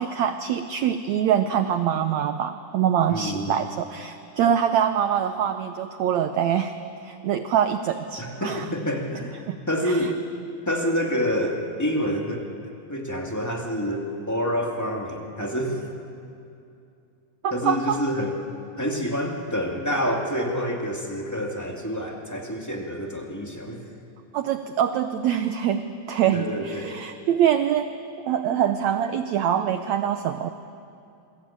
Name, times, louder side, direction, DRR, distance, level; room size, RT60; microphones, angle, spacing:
voice 1, 0.0-6.8 7.0-8.7 9.5-9.6 9.8-10.1 17.4-18.0 24.3-27.9 28.3-30.5, right 9 dB, 90° right, 9 dB, 1.5 m, -24 dB
voice 2, 3.1-3.6 8.2-9.4 9.7-10.1 10.6-12.5 12.9-15.9 17.5-18.3 18.8-24.0 26.3-27.0, equal, 5° left, 1 dB, 1.4 m, -27 dB
27.5 x 23.0 x 8.7 m, 2.6 s
omnidirectional pair, 4.3 m